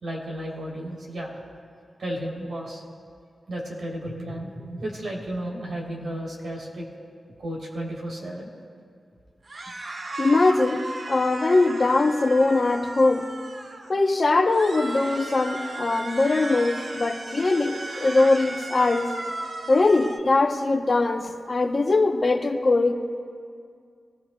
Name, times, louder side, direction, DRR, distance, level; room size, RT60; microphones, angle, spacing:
voice 1, 0.0-1.4 2.0-2.8 3.5-6.8 7.4-8.5, right 1 dB, 75° right, -3 dB, 3.3 m, -33 dB
sound 1, 9.5-13.9 14.5-20.2, right 2 dB, 50° right, 0.8 m, -35 dB
voice 2, 10.2-13.3 13.9-19.1 19.7-22.9, left 3 dB, 45° left, 4 dB, 0.8 m, -21 dB
22.5 x 15.5 x 2.3 m, 2.2 s
wide cardioid pair, 85°, 0 cm